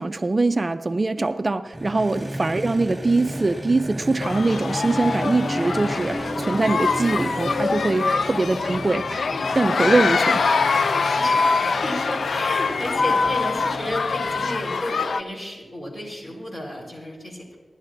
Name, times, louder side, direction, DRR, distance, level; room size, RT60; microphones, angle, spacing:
voice 1, 0.0-9.2 9.5-10.4, right 3 dB, 35° right, 11 dB, 0.4 m, -23 dB
Motorcycle, 1.7-14.7, right 1 dB, 10° right, 2.1 m, -34 dB
sound 1, 4.2-15.2, left 4 dB, 85° left, 0.3 m, -24 dB
voice 2, 10.7-17.6, equal, 50° left, -2 dB, 4.2 m, -33 dB
26.5 x 11.5 x 2.6 m, 1.4 s
wide cardioid pair, 120°, 0 cm